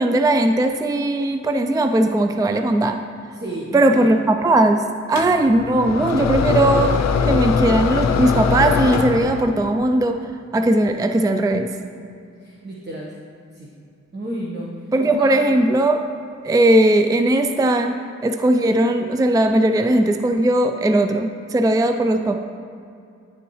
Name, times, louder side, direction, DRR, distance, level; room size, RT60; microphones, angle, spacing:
voice 1, 0.0-3.0 3.7-7.0 7.3-10.2 10.5-11.7 14.9-16.0 16.4-17.9 18.2-22.4, right 1 dB, 15° right, 7 dB, 0.4 m, -18 dB
voice 2, 3.3-4.1 12.4-13.1 13.5-13.7 14.1-15.6, right 1 dB, 35° right, -4 dB, 1.2 m, -32 dB
sound 1, 5.2-9.6, left 5 dB, 65° left, 0.6 m, -21 dB
10.5 x 6.8 x 3.1 m, 2.4 s
cardioid pair, 55°, 29 cm